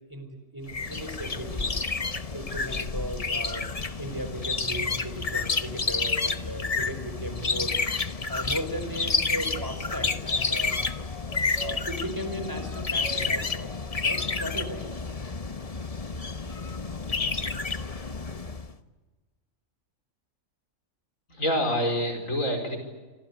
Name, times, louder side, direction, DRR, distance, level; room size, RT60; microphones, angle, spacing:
voice 1, 0.1-1.8 2.3-3.7 4.0-7.7 8.3-10.8 11.6-13.7 14.0-14.9, equal, 15° right, 7 dB, 4.8 m, -36 dB
sound 1, 0.7-18.7, left 4 dB, 30° left, 1.1 m, -30 dB
voice 2, 21.3-22.8, equal, 75° left, 5 dB, 5.6 m, -26 dB
27.5 x 25.5 x 8.3 m, 1.3 s
omnidirectional pair, 1.4 m